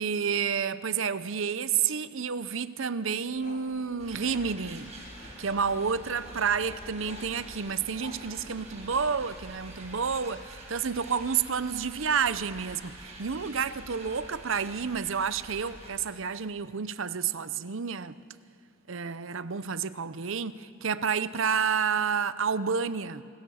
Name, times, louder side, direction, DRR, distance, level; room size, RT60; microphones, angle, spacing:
voice 1, 0.0-4.9 5.4-18.2 18.9-23.2, right 6 dB, 70° right, 0.7 m, -30 dB
sound 1, 3.3-9.6, left 2 dB, 40° left, 1.7 m, -51 dB
sound 2, 4.0-15.9, right 2 dB, 30° right, 5.6 m, -46 dB
29.5 x 27.5 x 6.4 m
head